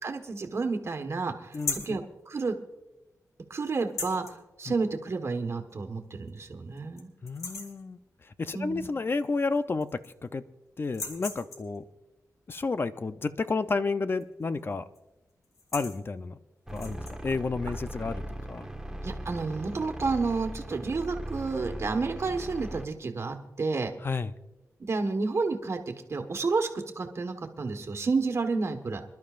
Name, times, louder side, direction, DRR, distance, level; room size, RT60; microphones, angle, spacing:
voice 1, 0.0-1.6 1.8-2.6 3.5-7.1 8.5-8.9 19.0-23.9 24.9-26.7 26.9-29.0, right 4 dB, 50° right, 5 dB, 1.5 m, -30 dB
sound 1, 1.5-2.0 3.8-4.4 5.7-5.8 6.3-6.4 6.8-7.0 7.3-7.8 9.2-9.3 9.6-10.3 10.8-11.8 14.1-14.4 14.7-15.0 15.4-16.0 16.7-17.2, left 3 dB, 65° left, 2.1 m, -37 dB
voice 2, 7.2-10.4 10.8-11.8 12.5-14.8 15.7-16.4 16.7-18.2 18.5-18.7 24.0-24.3, left 4 dB, 40° left, 11 dB, 0.6 m, -31 dB
sound 2, 16.7-22.8, right 1 dB, 10° right, 1.3 m, -39 dB
26.5 x 12.0 x 2.5 m, 1.0 s
wide cardioid pair, 90°, 6 cm